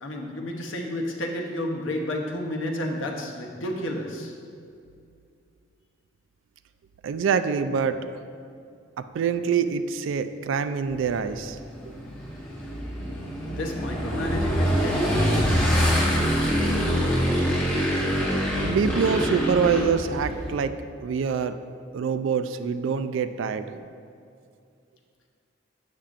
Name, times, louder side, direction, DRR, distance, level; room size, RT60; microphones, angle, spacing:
voice 1, 0.0-4.4 13.6-16.2, left 1 dB, 90° left, 1 dB, 0.8 m, -31 dB
voice 2, 7.0-8.0 9.0-11.6 11.9-12.0 18.6-21.6 21.9-23.8, right 6 dB, 90° right, 11 dB, 0.3 m, -25 dB
Motorcycle / Engine, 10.9-20.6, equal, 10° left, 1.5 m, -25 dB
7.2 x 6.6 x 2.5 m, 2.4 s
head